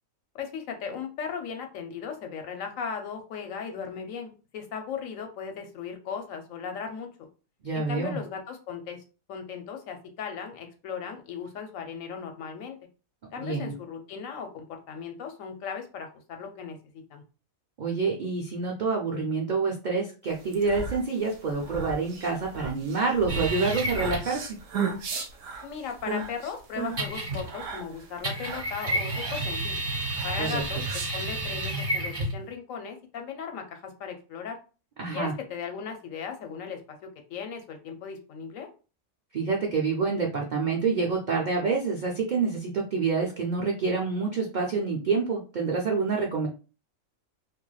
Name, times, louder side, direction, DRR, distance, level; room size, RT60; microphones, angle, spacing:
voice 1, 0.3-7.1 7.7-9.0 9.3-12.8 13.3-16.8 17.1-17.2 25.6-29.9 30.2-34.6 35.1-37.0 37.3-38.7, left 6 dB, 70° left, 4 dB, 1.0 m, -37 dB
voice 2, 7.6-8.2 13.4-13.7 17.8-24.6 30.4-30.6 35.0-35.3 39.3-46.5, right 4 dB, 85° right, -1 dB, 0.4 m, -27 dB
sound 1, 20.4-31.6, right 4 dB, 70° right, 1.0 m, -36 dB
sound 2, 23.3-24.4 27.0-27.7 28.2-32.4, right 1 dB, 35° right, 1.2 m, -31 dB
3.1 x 2.5 x 2.3 m, 0.34 s
omnidirectional pair, 1.5 m